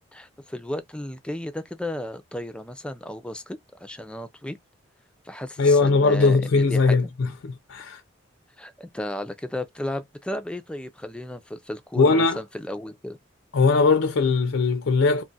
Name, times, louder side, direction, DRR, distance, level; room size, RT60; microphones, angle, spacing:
voice 1, 0.1-4.6 5.2-7.0 8.6-13.2, left 1 dB, 5° left, 0.4 m, -34 dB
voice 2, 5.6-8.0 12.0-12.4 13.5-15.2, left 3 dB, 75° left, 0.5 m, -20 dB
2.4 x 2.1 x 3.9 m
head